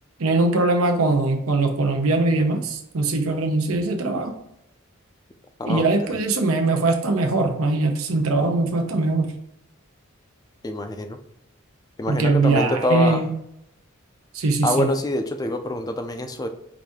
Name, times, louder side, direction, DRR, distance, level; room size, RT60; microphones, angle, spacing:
voice 1, 0.2-4.3 5.7-9.3 12.1-13.3 14.3-14.9, right 3 dB, 90° right, 5 dB, 0.7 m, -21 dB
voice 2, 5.6-6.2 10.6-11.2 12.0-13.2 14.6-16.5, left 1 dB, 20° left, 7 dB, 0.3 m, -25 dB
4.9 x 2.6 x 3.5 m, 0.81 s
head